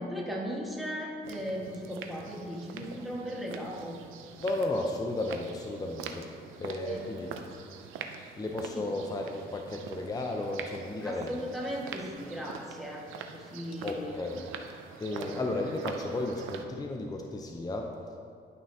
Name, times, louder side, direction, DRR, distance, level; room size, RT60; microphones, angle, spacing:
voice 1, 0.0-4.0 6.8-7.0 8.7-8.9 11.0-13.0 13.3-14.1 15.1-15.5, equal, ahead, -3 dB, 1.5 m, -37 dB
sound 1, 1.2-16.7, right 6 dB, 90° right, 0.5 m, -45 dB
voice 2, 4.4-7.3 8.4-11.4 13.8-14.5 15.0-17.9, left 2 dB, 20° left, 2 dB, 0.6 m, -34 dB
11.0 x 5.8 x 2.8 m, 2.3 s
cardioid pair, 90°, 20 cm